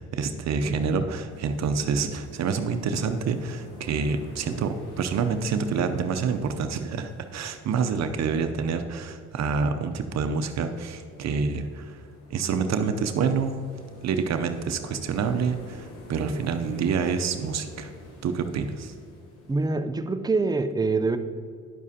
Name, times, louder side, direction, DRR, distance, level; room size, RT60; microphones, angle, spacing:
voice 1, 0.0-12.0 12.3-13.6 14.0-17.9 18.2-18.9, right 5 dB, 60° right, 8 dB, 0.6 m, -27 dB
sound 1, 1.3-19.7, left 2 dB, 85° left, 1.7 m, -48 dB
voice 2, 19.5-21.2, right 3 dB, 15° right, 8 dB, 0.4 m, -25 dB
10.0 x 7.2 x 2.8 m, 2.3 s
cardioid pair, 90°, 30 cm